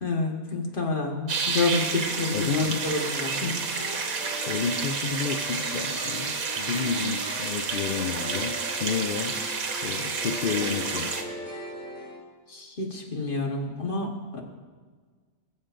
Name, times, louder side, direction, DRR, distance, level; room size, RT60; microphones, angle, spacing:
voice 1, 0.0-3.6 12.5-14.4, left 3 dB, 40° left, 1 dB, 1.5 m, -28 dB
sound 1, 1.3-11.2, right 4 dB, 85° right, 1.4 m, -30 dB
voice 2, 2.3-2.9 4.5-9.4 9.8-11.2, left 6 dB, 60° left, 7 dB, 0.5 m, -30 dB
sound 2, 2.9-12.2, equal, 25° left, 3.7 m, -39 dB
20.0 x 7.3 x 2.6 m, 1.5 s
omnidirectional pair, 1.4 m